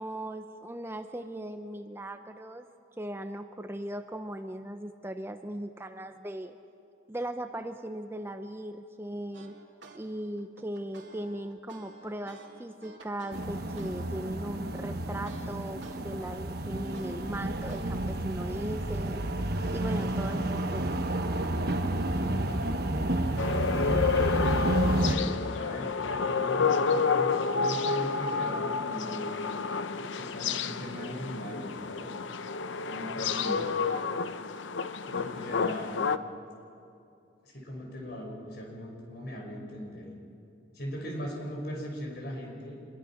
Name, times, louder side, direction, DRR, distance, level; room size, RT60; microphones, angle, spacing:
voice 1, 0.0-2.7 3.0-6.6 7.1-9.6 9.9-19.2 19.7-21.0 23.5-23.6 33.4-33.6, right 1 dB, 15° right, 8 dB, 0.6 m, -38 dB
sound 1, 9.3-10.0 10.4-16.0 16.4-18.1, right 1 dB, 75° right, 2.5 m, -51 dB
sound 2, 13.3-25.1, right 1 dB, 55° right, 1.2 m, -30 dB
sound 3, 23.4-36.2, left 5 dB, 75° left, 0.7 m, -30 dB
voice 2, 24.7-29.3 30.0-32.1 32.9-33.7 35.0-36.0 37.4-40.1 40.7-42.8, equal, 60° left, 0 dB, 5.7 m, -39 dB
26.0 x 22.0 x 5.8 m, 2.6 s
head